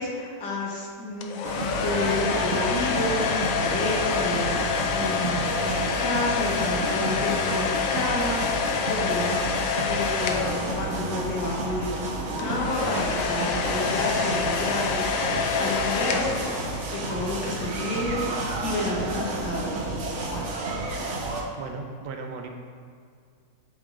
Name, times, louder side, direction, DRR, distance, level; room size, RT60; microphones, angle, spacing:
voice 1, 0.0-7.6 7.9-9.6 9.8-20.0 20.3-20.5, left 2 dB, 90° left, -2 dB, 1.7 m, -31 dB
sound 1, 1.2-11.3 12.4-17.1, left 6 dB, 70° left, 0.8 m, -27 dB
sound 2, 1.4-21.4, right 2 dB, 55° right, 0.9 m, -31 dB
voice 2, 21.6-22.5, right 4 dB, 90° right, 3 dB, 1.3 m, -36 dB
8.0 x 3.4 x 3.7 m, 2.1 s
omnidirectional pair, 1.8 m